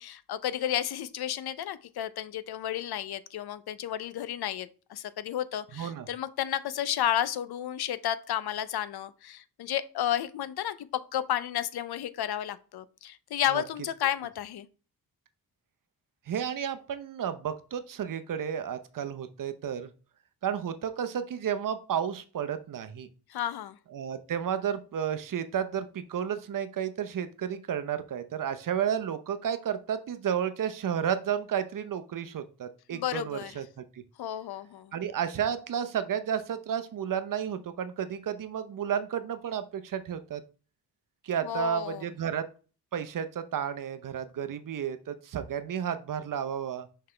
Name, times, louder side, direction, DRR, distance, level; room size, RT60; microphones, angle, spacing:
voice 1, 0.0-10.9 11.1-14.7 23.3-23.8 32.9-33.6 34.2-34.9 41.4-42.0, left 11 dB, 75° left, 0.6 m, -32 dB
voice 2, 5.7-6.1 13.5-13.6 16.3-19.9 20.4-23.1 23.9-34.0 34.9-40.4 41.2-42.5 42.9-46.9, right 8 dB, 55° right, 0.7 m, -32 dB
5.9 x 5.6 x 3.3 m
wide cardioid pair, 140°, 38 cm